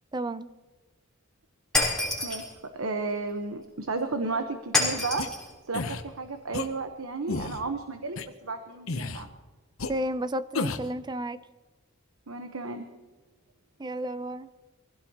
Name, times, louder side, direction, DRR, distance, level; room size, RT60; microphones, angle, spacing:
voice 1, 0.1-0.5 9.9-11.4 13.8-14.5, right 1 dB, 20° right, 0.5 m, -32 dB
Shatter, 1.7-2.5 4.7-5.5, left 3 dB, 5° left, 3.7 m, -27 dB
voice 2, 2.2-5.3 5.7-9.3 12.3-12.9, right 3 dB, 85° right, 1.1 m, -33 dB
sound 1, 5.2-5.3 5.7-6.0 6.5-6.7 7.3-7.6 8.2-8.3 8.9-9.2 9.8-9.9 10.5-10.9, left 3 dB, 80° left, 0.9 m, -31 dB
24.5 x 16.0 x 3.0 m
head